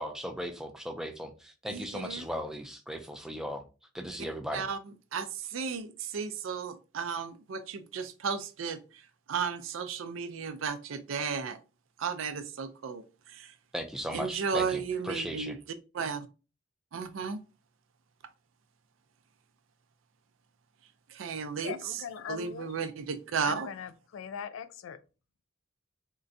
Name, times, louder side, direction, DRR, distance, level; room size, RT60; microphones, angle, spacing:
voice 1, 0.0-3.6 3.9-4.7 13.7-15.6, equal, 5° right, 0.4 m, -37 dB
voice 2, 1.7-2.3 4.5-4.8 5.1-11.6 12.0-13.5 14.1-15.6 15.9-16.3 16.9-17.4 21.1-23.7, right 6 dB, 85° right, 0.4 m, -34 dB
voice 3, 21.6-22.7 23.4-25.0, left 7 dB, 80° left, 0.3 m, -40 dB
3.7 x 2.1 x 2.6 m
head